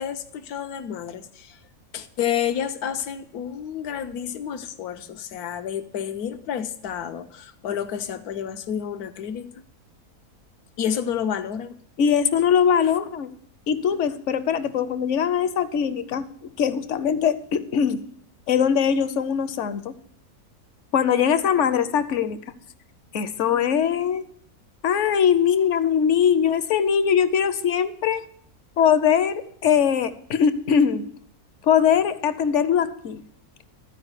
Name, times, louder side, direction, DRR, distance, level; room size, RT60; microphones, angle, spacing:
voice 1, 0.0-1.6 1.9-9.5 10.8-11.7, left 9 dB, 85° left, 9 dB, 1.3 m, -30 dB
voice 2, 12.0-13.3 13.7-16.2 16.6-18.0 18.5-19.9 20.9-22.4 23.1-24.2 24.8-28.2 28.8-31.0 31.7-33.2, left 8 dB, 60° left, 12 dB, 0.9 m, -21 dB
13.5 x 4.9 x 8.1 m, 0.64 s
omnidirectional pair, 1.6 m